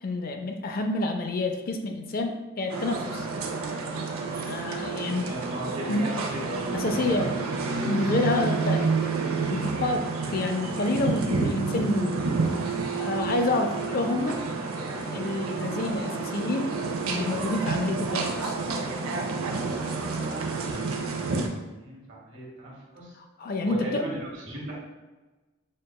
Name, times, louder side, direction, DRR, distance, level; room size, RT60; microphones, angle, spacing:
voice 1, 0.0-3.3 4.2-5.3 5.9-6.1 6.7-7.3 7.8-9.2 9.5-12.1 13.0-14.4 15.1-16.7 17.1-18.6 23.4-24.0, left 2 dB, 45° left, 4 dB, 0.3 m, -28 dB
sound 1, 2.7-21.5, right 4 dB, 85° right, 0.5 m, -29 dB
voice 2, 5.1-7.4 7.8-8.2 20.4-21.3 21.7-23.1 23.6-24.7, right 1 dB, 55° right, -4 dB, 1.3 m, -37 dB
6.3 x 2.2 x 2.2 m, 1.2 s
head